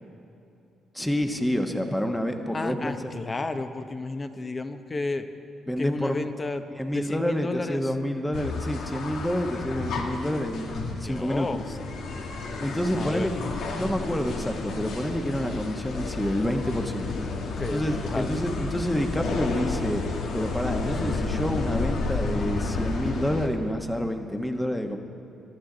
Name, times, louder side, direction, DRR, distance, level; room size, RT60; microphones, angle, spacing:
voice 1, 0.9-3.1 5.7-6.3 6.8-11.5 12.6-13.3 13.7-17.1 17.7-20.0 20.3-25.0, equal, 5° left, 5 dB, 1.2 m, -28 dB
voice 2, 2.5-5.3 5.8-6.6 6.9-7.9 11.0-11.6 12.9-13.3 17.4-18.4, left 3 dB, 25° left, 8 dB, 0.9 m, -32 dB
sound 1, 8.3-23.5, left 3 dB, 75° left, 1.4 m, -31 dB
22.0 x 12.5 x 3.9 m, 2.7 s
cardioid pair, 90°, 0 cm